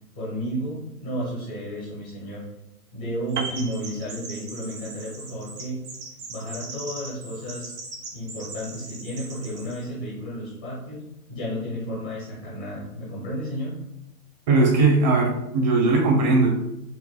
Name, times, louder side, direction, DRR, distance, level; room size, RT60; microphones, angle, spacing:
voice 1, 0.1-2.4 2.9-5.8 6.3-7.7 8.1-11.0 11.3-13.8, equal, 5° left, -8 dB, 0.4 m, -32 dB
Chirp tweet, 3.3-9.8, right 3 dB, 50° right, 1.1 m, -40 dB
Piano, 3.4-4.8 5.1-5.3, right 5 dB, 80° right, 0.6 m, -35 dB
voice 2, 14.5-16.5, right 3 dB, 30° right, -1 dB, 0.8 m, -19 dB
4.7 x 2.8 x 2.2 m, 0.86 s
figure-of-eight pair, 135°, 46 cm